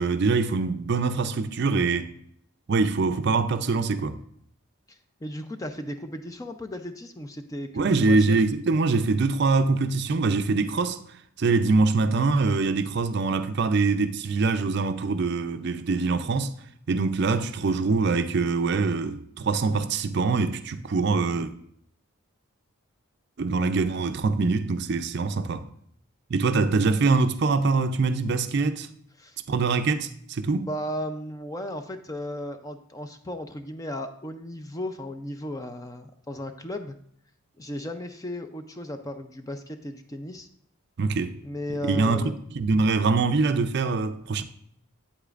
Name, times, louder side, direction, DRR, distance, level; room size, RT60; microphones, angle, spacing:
voice 1, 0.0-2.1 2.7-4.2 7.7-11.0 11.4-16.5 16.9-21.5 23.4-25.6 26.3-28.9 29.5-30.7 41.0-41.4 41.8-44.4, right 4 dB, 50° right, 0.4 m, -24 dB
voice 2, 4.9-8.4 29.2-29.4 30.5-37.0 37.6-40.5 41.4-42.3, left 1 dB, 15° left, 0.4 m, -35 dB
8.4 x 8.2 x 2.4 m
head